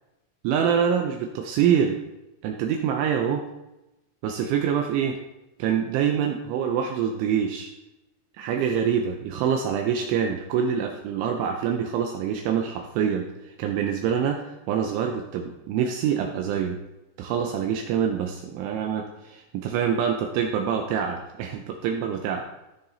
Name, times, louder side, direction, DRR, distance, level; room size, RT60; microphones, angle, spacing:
voice 1, 0.4-2.0 2.4-3.4 4.2-5.2 5.6-7.7 8.3-16.8 17.2-22.5, right 8 dB, 80° right, 3 dB, 2.8 m, -25 dB
17.0 x 6.8 x 2.8 m, 0.97 s
omnidirectional pair, 6.0 m